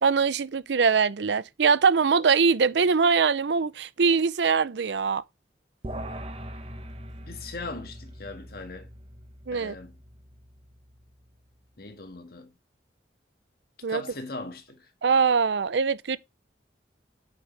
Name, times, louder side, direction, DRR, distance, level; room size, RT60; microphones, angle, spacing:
voice 1, 0.0-5.2 9.5-9.7 13.8-14.0 15.0-16.2, right 5 dB, 75° right, 0.5 m, -22 dB
sound 1, 5.8-11.3, equal, 35° right, 1.2 m, -42 dB
voice 2, 7.3-8.9 9.5-10.0 11.8-12.5 13.9-14.9, left 3 dB, 60° left, 1.8 m, -39 dB
8.9 x 6.7 x 3.3 m
head